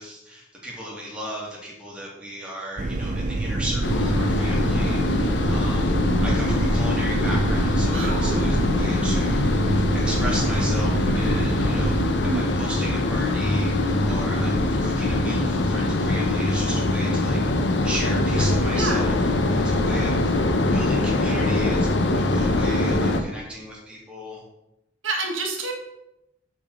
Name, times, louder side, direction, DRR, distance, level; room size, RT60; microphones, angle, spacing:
voice 1, 0.0-24.4, equal, 5° right, -5 dB, 2.7 m, -36 dB
sound 1, 2.8-12.1, right 2 dB, 40° right, 0.6 m, -26 dB
sound 2, 3.8-23.2, left 2 dB, 60° left, 0.9 m, -23 dB
voice 2, 7.9-8.6 12.3-12.4 18.7-19.1 25.0-25.7, right 3 dB, 80° right, 2 dB, 1.7 m, -28 dB
8.9 x 4.6 x 6.8 m, 0.85 s
head